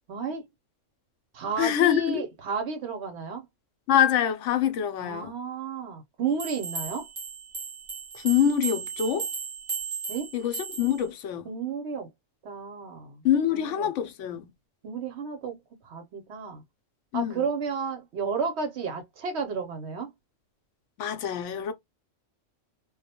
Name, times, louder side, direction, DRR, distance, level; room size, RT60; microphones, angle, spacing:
voice 1, 0.1-0.4 1.3-3.4 5.0-7.1 10.1-10.3 11.4-12.1 12.4-13.2 13.5-13.9 14.8-15.6 15.8-16.6 17.1-20.1, right 5 dB, 65° right, 0.8 m, -32 dB
voice 2, 1.6-2.2 3.9-5.4 8.1-9.3 10.3-11.5 13.2-14.5 17.1-17.5 21.0-21.7, left 10 dB, 70° left, 0.9 m, -25 dB
sound 1, 6.4-11.0, right 5 dB, 45° right, 0.4 m, -35 dB
2.3 x 2.1 x 2.6 m
omnidirectional pair, 1.4 m